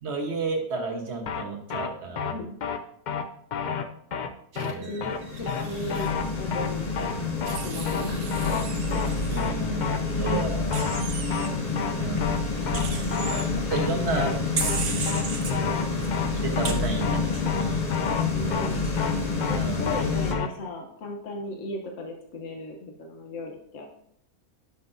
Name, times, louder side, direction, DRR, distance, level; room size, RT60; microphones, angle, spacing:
voice 1, 0.0-2.3 4.5-5.0 9.3-10.8 12.0-12.2 13.2-14.3 15.6-17.8 19.6-20.0, right 3 dB, 50° right, 2 dB, 1.4 m, -32 dB
sound 1, 1.3-1.4 1.7-1.9 2.2-2.3 2.6-2.8 3.1-3.2 3.5-3.8 4.1-4.3 4.6-4.7 5.0-5.2 5.5-5.6 5.9-6.2 6.5-6.7 7.0-7.1 7.4-7.6 7.9-8.0 8.3-8.6 8.9-9.1 9.4-9.5 9.8-10.0 10.3-10.4 10.7-11.0 11.3-11.5 11.8-11.9 12.2-12.4 12.7-12.8 13.1-13.4 13.7-13.9 14.2-14.3 14.6-14.8 15.1-15.2 15.5-15.8 16.1-16.3 16.6-16.7 17.0-17.2 17.5-17.6 17.9-18.2 18.5-18.7 19.0-19.1 19.4-19.6 19.9-20.0 20.3-20.5, left 6 dB, 80° left, 0.4 m, -30 dB
Wild animals, 4.5-6.1 7.5-9.5 10.7-11.5 12.7-13.4 14.6-15.5 16.6-16.7, right 6 dB, 75° right, 1.4 m, -35 dB
voice 2, 4.9-7.2 7.6-8.4 11.6-11.8 13.9-14.4 18.3-18.9 19.5-23.9, left 2 dB, 60° left, 1 dB, 1.3 m, -36 dB
sound 2, 5.0-20.3, left 4 dB, 30° left, 0.9 m, -28 dB
9.3 x 7.0 x 2.7 m, 0.68 s
omnidirectional pair, 1.6 m